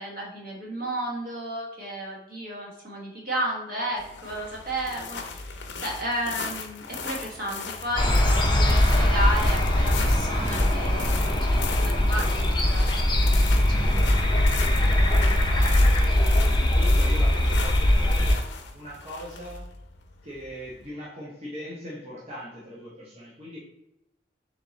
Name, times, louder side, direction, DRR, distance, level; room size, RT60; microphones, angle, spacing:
voice 1, 0.0-13.2 13.4-14.1 14.8-15.3, right 1 dB, 55° right, -3 dB, 1.3 m, -33 dB
sound 1, 4.0-20.9, left 5 dB, 75° left, 0.6 m, -38 dB
sound 2, 8.0-18.3, left 1 dB, 25° left, 0.7 m, -21 dB
voice 2, 14.9-19.7 20.2-23.6, equal, 35° right, -6 dB, 0.9 m, -40 dB
3.7 x 3.0 x 3.9 m, 0.86 s
head